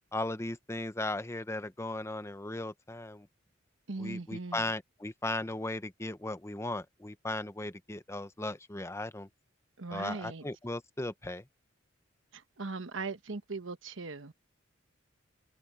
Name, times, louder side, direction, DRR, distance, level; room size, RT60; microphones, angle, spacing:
voice 1, 0.1-3.3 4.0-9.3 9.9-11.4, left 2 dB, 15° left, 0.9 m, -37 dB
voice 2, 3.9-4.7 9.8-10.4 12.3-14.3, right 3 dB, 70° right, 1.2 m, -39 dB
head